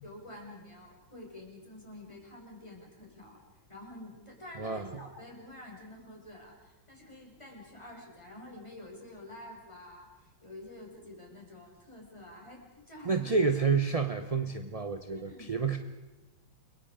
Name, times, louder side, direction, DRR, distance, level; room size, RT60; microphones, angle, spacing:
voice 1, 0.0-3.4 3.7-13.3 15.1-15.5, left 1 dB, 15° left, -1 dB, 6.3 m, -48 dB
voice 2, 13.0-15.8, right 5 dB, 30° right, 7 dB, 0.7 m, -29 dB
30.0 x 23.5 x 5.1 m, 1.1 s
omnidirectional pair, 2.0 m